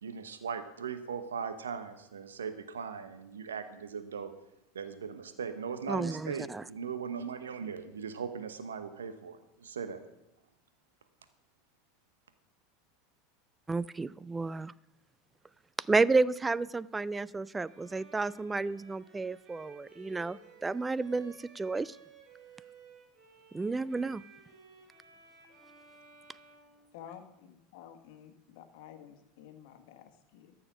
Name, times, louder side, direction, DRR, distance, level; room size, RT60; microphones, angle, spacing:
voice 1, 0.0-4.3 4.7-10.0, right 6 dB, 80° right, 9 dB, 1.0 m, -39 dB
voice 2, 5.9-6.6 13.7-14.7 15.8-22.0 23.5-24.2, right 3 dB, 15° right, 20 dB, 0.4 m, -31 dB
Bowed string instrument, 17.6-27.5, right 4 dB, 45° right, 5.6 m, -57 dB
voice 3, 26.9-30.5, left 9 dB, 60° left, 7 dB, 1.4 m, -51 dB
13.5 x 7.1 x 6.3 m, 0.87 s
figure-of-eight pair, 80°, 0 cm